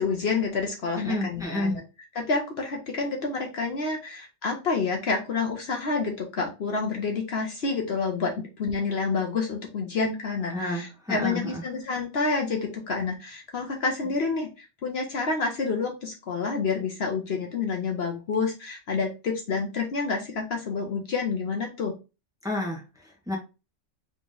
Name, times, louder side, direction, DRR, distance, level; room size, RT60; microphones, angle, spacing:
voice 1, 0.0-1.8 2.1-21.9, left 4 dB, 60° left, 2 dB, 1.0 m, -28 dB
voice 2, 1.0-1.8 10.5-11.6 22.4-23.4, left 1 dB, 5° right, -3 dB, 1.2 m, -30 dB
4.0 x 2.9 x 3.7 m, 0.29 s
omnidirectional pair, 1.3 m